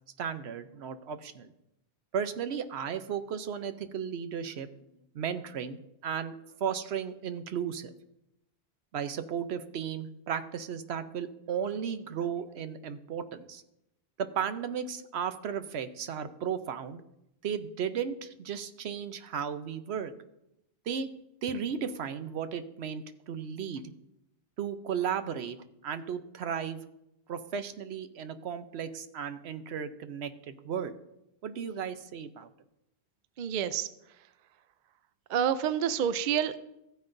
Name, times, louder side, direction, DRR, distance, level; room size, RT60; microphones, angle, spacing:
voice 1, 0.2-1.5 2.1-4.7 5.1-6.3 6.6-7.9 8.9-13.6 14.2-17.0 17.4-20.1 20.9-21.1 21.4-23.8 24.6-25.6 25.8-26.8 27.3-30.9 31.4-32.5, right 7 dB, 75° right, 10 dB, 0.9 m, -35 dB
voice 2, 33.4-34.3 35.3-36.6, right 9 dB, 60° right, 13 dB, 0.5 m, -29 dB
14.5 x 9.3 x 2.6 m, 0.84 s
omnidirectional pair, 1.1 m